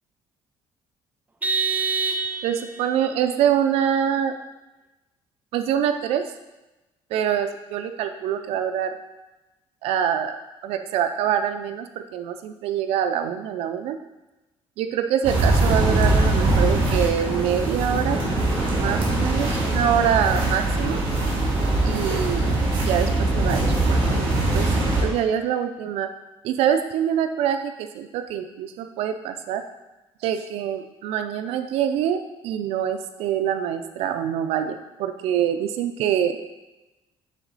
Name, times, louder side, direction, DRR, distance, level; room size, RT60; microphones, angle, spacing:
Vehicle horn car horn honking, 1.4-2.8, right 4 dB, 15° right, 0.4 m, -25 dB
voice 1, 2.4-4.3 5.5-6.2 7.1-9.0 9.8-14.0 14.8-18.2 18.8-21.0 21.8-22.6 22.9-26.1 26.4-29.6 30.2-36.4, right 9 dB, 85° right, 8 dB, 0.5 m, -25 dB
sound 1, 15.2-25.0, right 2 dB, 60° right, 2.5 m, -22 dB
9.0 x 3.7 x 4.1 m, 1.0 s
cardioid pair, 145°, 10 cm